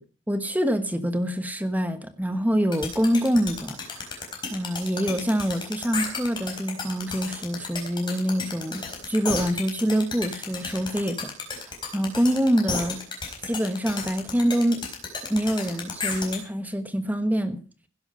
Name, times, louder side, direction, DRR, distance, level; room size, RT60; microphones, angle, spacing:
voice 1, 0.3-4.2 4.5-13.0 13.4-14.8 15.3-17.6, equal, 10° right, 10 dB, 1.2 m, -25 dB
sound 1, 2.7-16.4, left 4 dB, 20° left, 4.4 m, -32 dB
16.0 x 11.0 x 5.5 m, 0.38 s
head